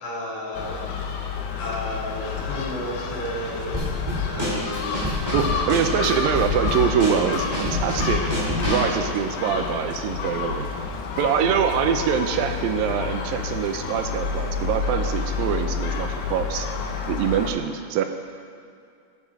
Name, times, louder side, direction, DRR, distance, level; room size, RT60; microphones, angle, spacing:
voice 1, 0.0-0.8 1.6-3.8 4.3-5.0 9.5-9.7, equal, 50° left, -8 dB, 2.8 m, -32 dB
Gull seagull, 0.5-17.5, left 5 dB, 75° left, 2.4 m, -29 dB
Drum kit / Snare drum, 3.7-8.9, left 1 dB, 10° right, 1.2 m, -27 dB
voice 2, 5.3-8.2 8.7-10.7 11.2-16.7 17.1-18.0, right 8 dB, 80° right, 6 dB, 2.2 m, -24 dB
16.5 x 7.1 x 3.6 m, 2.3 s
omnidirectional pair, 4.3 m